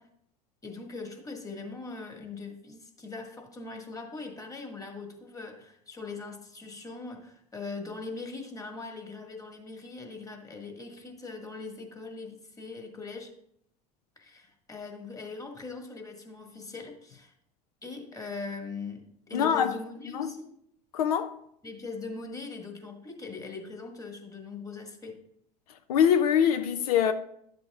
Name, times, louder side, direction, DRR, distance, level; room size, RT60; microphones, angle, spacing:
voice 1, 0.6-13.3 14.1-17.3 17.8-20.6 21.6-25.2, left 4 dB, 20° left, 1.7 m, -41 dB
voice 2, 19.3-19.7 20.1-20.3 20.9-21.3 25.9-27.1, left 8 dB, 85° left, 0.6 m, -23 dB
11.0 x 7.6 x 2.4 m
hypercardioid pair, 90°, 19 cm